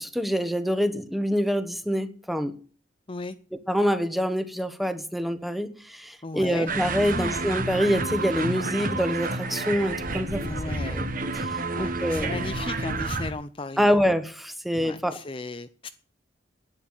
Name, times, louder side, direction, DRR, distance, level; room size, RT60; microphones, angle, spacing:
voice 1, 0.0-2.6 3.7-10.4 10.9-11.1 11.4-12.4 13.8-15.2, equal, ahead, 1.1 m, -26 dB
voice 2, 6.2-6.7 7.1-7.4 10.4-11.0 11.7-14.0 14.7-15.9, left 2 dB, 25° left, 0.6 m, -36 dB
sound 1, 6.7-13.3, right 2 dB, 45° right, 1.5 m, -30 dB
11.0 x 9.3 x 9.2 m
head